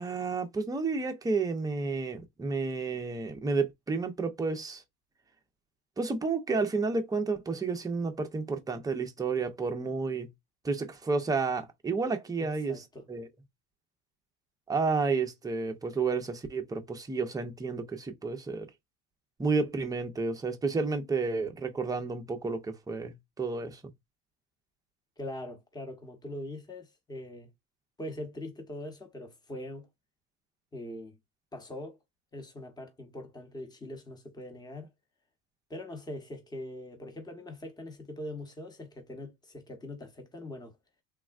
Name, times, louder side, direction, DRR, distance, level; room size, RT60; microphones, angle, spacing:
voice 1, 0.0-4.8 6.0-10.3 10.6-12.7 13.1-13.3 14.7-18.7 19.4-23.8, right 4 dB, 10° right, 0.5 m, -31 dB
voice 2, 12.4-13.1 25.2-27.5 28.0-29.9 30.7-31.2 31.5-32.0 32.3-34.9 35.7-40.8, left 1 dB, 10° left, 0.8 m, -42 dB
3.5 x 2.0 x 2.3 m
supercardioid pair, 90°, 45 cm